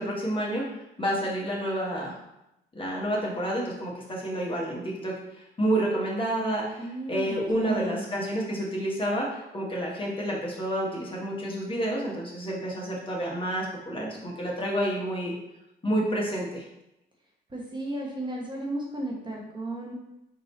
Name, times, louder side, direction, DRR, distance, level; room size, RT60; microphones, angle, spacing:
voice 1, 0.0-2.2 2.7-5.1 5.6-15.3 15.8-16.6, right 1 dB, 25° left, -3 dB, 1.2 m, -29 dB
voice 2, 6.8-8.1 17.5-19.9, right 1 dB, 25° right, -2 dB, 1.0 m, -34 dB
4.0 x 2.7 x 4.1 m, 0.86 s
cardioid pair, 90°, 20 cm